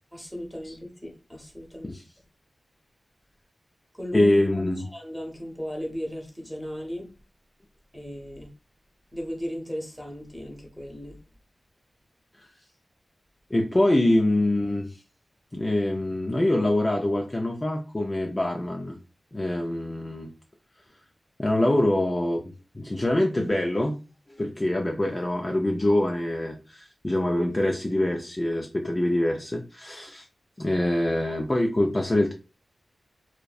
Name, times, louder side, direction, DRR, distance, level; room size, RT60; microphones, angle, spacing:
voice 1, 0.1-1.9 3.9-4.3 4.8-7.1 7.9-8.5 9.1-11.2, equal, ahead, 0.9 m, -36 dB
voice 2, 4.1-4.9 12.4-12.5 13.5-15.0 15.5-19.0 19.3-20.3 21.4-23.9 24.4-30.3 30.6-32.3, left 1 dB, 25° left, 0.4 m, -24 dB
2.6 x 2.1 x 2.3 m
wide cardioid pair, 65°, 0 cm